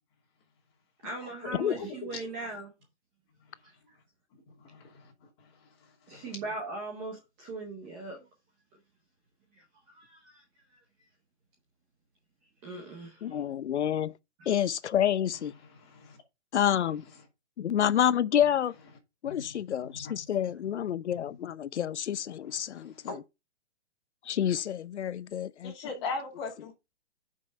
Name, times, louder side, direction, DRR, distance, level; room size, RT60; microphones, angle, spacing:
voice 1, 1.0-2.7 3.6-4.0 6.1-8.3 9.5-10.4 10.7-10.8 12.6-13.5 14.4-14.5, right 3 dB, 10° right, 0.7 m, -40 dB
voice 2, 1.7-2.1 4.6-5.1 6.1-6.2 15.6-16.2 19.2-20.1 21.3-21.4 22.4-23.2 25.6-26.7, left 4 dB, 25° left, 2.9 m, -40 dB
voice 3, 13.2-14.1 14.5-15.5 16.5-17.0 17.6-18.7 19.2-22.9 24.3-25.7, left 10 dB, 85° left, 0.7 m, -28 dB
8.2 x 5.5 x 5.4 m
hypercardioid pair, 175°, 33 cm